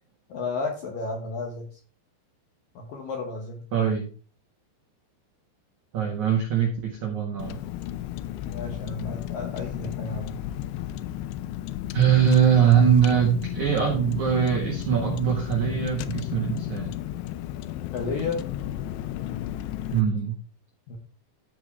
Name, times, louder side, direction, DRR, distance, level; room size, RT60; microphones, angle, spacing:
voice 1, 0.3-1.8 2.8-3.6 8.4-10.4 17.9-18.4 20.9-21.0, left 3 dB, 70° left, 2 dB, 2.1 m, -32 dB
voice 2, 3.7-4.1 5.9-7.6 11.9-16.9 19.9-20.4, right 8 dB, 70° right, 0 dB, 1.8 m, -22 dB
Car, 7.4-20.0, left 13 dB, 90° left, 2.4 m, -33 dB
15.0 x 5.0 x 3.3 m, 0.39 s
omnidirectional pair, 5.6 m